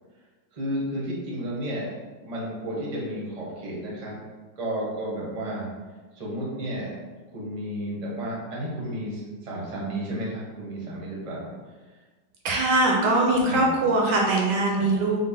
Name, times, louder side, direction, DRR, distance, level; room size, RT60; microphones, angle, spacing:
voice 1, 0.5-1.9 2.2-4.2 4.6-5.7 6.1-7.0 7.3-11.5 13.5-13.8 14.7-15.0, right 1 dB, 35° right, -5 dB, 0.6 m, -32 dB
voice 2, 12.4-15.2, right 2 dB, 75° right, -1 dB, 1.1 m, -22 dB
3.9 x 2.0 x 3.6 m, 1.3 s
omnidirectional pair, 2.0 m